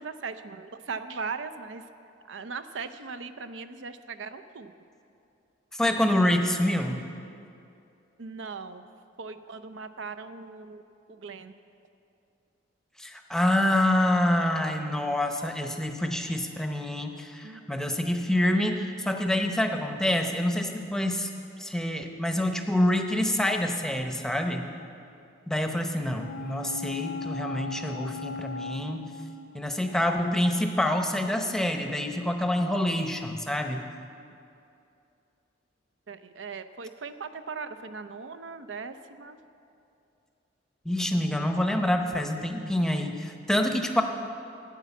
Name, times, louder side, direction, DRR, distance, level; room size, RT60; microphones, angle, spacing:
voice 1, 0.0-1.8 2.3-4.7 8.2-8.9 9.2-10.8 11.1-11.5 17.4-17.6 36.1-39.4, right 4 dB, 75° right, 11 dB, 0.6 m, -39 dB
voice 2, 5.7-7.0 13.0-21.3 21.6-24.7 25.5-29.1 29.5-33.9 40.8-44.0, left 1 dB, 5° left, 4 dB, 0.7 m, -26 dB
sound 1, 26.2-29.9 30.3-30.4, left 3 dB, 80° left, 0.7 m, -38 dB
12.5 x 9.3 x 7.1 m, 2.7 s
head